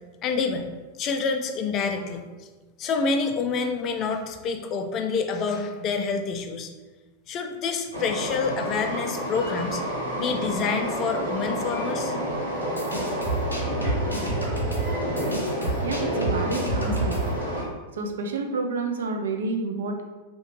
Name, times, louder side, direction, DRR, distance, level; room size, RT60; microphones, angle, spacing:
voice 1, 0.2-0.7 1.0-2.2 2.8-6.7 7.3-9.8 10.2-12.1, left 5 dB, 35° left, 6 dB, 0.3 m, -27 dB
Train, 7.9-17.6, equal, 85° right, 0.9 m, -29 dB
sound 1, 12.6-17.4, right 2 dB, 80° left, 0.5 m, -29 dB
voice 2, 15.8-17.2 17.9-20.0, right 3 dB, 65° right, 5 dB, 0.3 m, -29 dB
2.7 x 2.2 x 2.9 m, 1.2 s
figure-of-eight pair, 90°, 0 cm